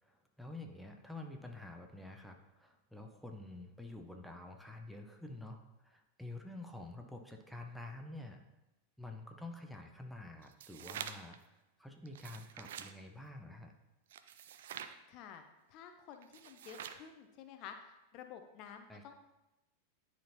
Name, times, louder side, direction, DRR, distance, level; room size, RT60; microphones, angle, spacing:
voice 1, 0.0-8.4 9.0-13.7 18.9-19.1, left 2 dB, ahead, 3 dB, 0.6 m, -49 dB
sound 1, 10.4-11.4 12.1-12.9 14.1-15.0 16.2-17.1, right 9 dB, 60° right, 0.4 m, -47 dB
voice 2, 15.1-15.4 15.7-19.1, left 8 dB, 40° left, 6 dB, 0.5 m, -51 dB
10.0 x 4.4 x 2.8 m, 0.99 s
figure-of-eight pair, 90°, 0 cm